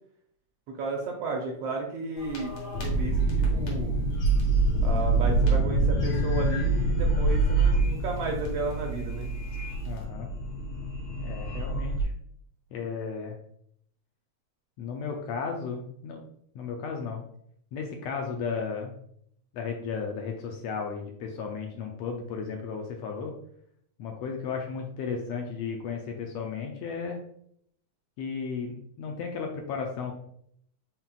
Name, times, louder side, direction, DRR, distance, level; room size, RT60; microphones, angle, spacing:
voice 1, 0.7-2.5 2.8-4.0 4.8-9.3, right 3 dB, 80° right, 1 dB, 1.5 m, -33 dB
sound 1, 2.2-12.0, right 2 dB, 65° left, 2.3 m, -26 dB
voice 2, 9.8-10.3 11.2-12.1 12.7-13.4 14.8-16.3 16.5-17.2 17.7-18.9 19.5-23.3 24.0-27.2 28.2-30.1, left 5 dB, 80° left, 2 dB, 1.5 m, -34 dB
5.7 x 3.7 x 2.3 m, 0.68 s
omnidirectional pair, 3.3 m